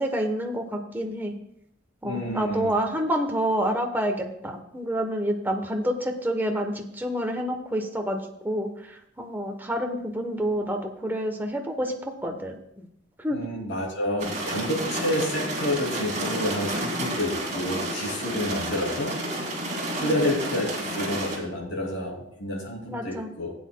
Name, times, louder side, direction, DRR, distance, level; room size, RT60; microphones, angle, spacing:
voice 1, 0.0-1.3 2.0-8.2 8.4-11.9 12.2-12.9 13.2-13.4 20.0-20.2 22.9-23.3, equal, 10° right, 3 dB, 1.0 m, -28 dB
voice 2, 2.0-2.7 13.3-19.1 19.9-23.5, left 1 dB, 70° left, -1 dB, 2.9 m, -29 dB
sound 1, 14.2-21.4, right 1 dB, 40° right, 2.4 m, -30 dB
16.0 x 8.4 x 2.2 m, 0.75 s
head